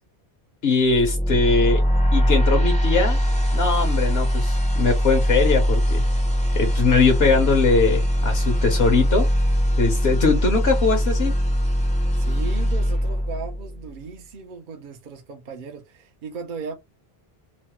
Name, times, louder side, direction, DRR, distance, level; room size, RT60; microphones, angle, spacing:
voice 1, 0.6-1.8 2.1-3.2 3.5-6.0 6.5-9.3 9.8-11.3, left 4 dB, 70° left, 1.0 m, -21 dB
sound 1, 0.8-13.9, equal, 10° left, 0.4 m, -21 dB
voice 2, 12.1-16.7, right 5 dB, 55° right, 0.7 m, -36 dB
3.0 x 2.1 x 2.9 m
omnidirectional pair, 1.1 m